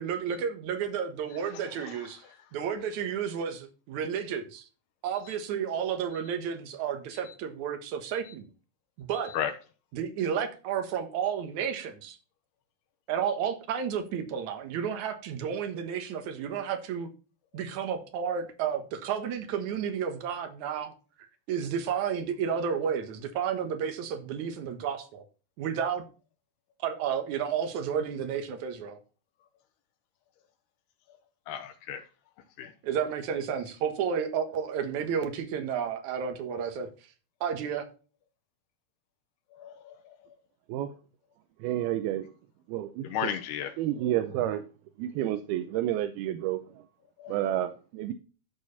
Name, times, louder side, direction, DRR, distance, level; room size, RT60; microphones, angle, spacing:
voice 1, 0.0-2.2 2.5-4.7 5.0-8.5 9.0-9.3 9.9-12.2 13.1-17.1 17.5-20.9 21.5-25.2 25.6-26.0 26.8-29.0 32.8-36.9 37.4-37.8, right 7 dB, 60° right, 2.4 m, -31 dB
voice 2, 31.5-32.0 32.6-32.7 39.6-39.9 43.0-43.7 47.2-47.4, left 9 dB, 85° left, 3.0 m, -34 dB
voice 3, 41.6-42.3 42.7-43.1 43.8-44.7 45.0-46.6 47.3-48.1, right 12 dB, 85° right, 2.6 m, -29 dB
13.5 x 4.9 x 4.1 m
omnidirectional pair, 4.5 m